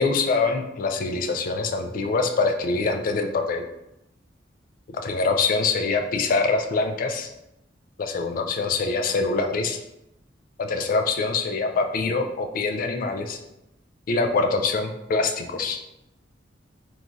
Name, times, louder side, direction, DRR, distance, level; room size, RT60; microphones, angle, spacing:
voice 1, 0.0-3.7 4.9-7.3 8.0-9.8 10.6-13.4 14.1-15.8, left 4 dB, 50° left, 5 dB, 0.3 m, -24 dB
3.0 x 2.3 x 2.6 m, 0.88 s
head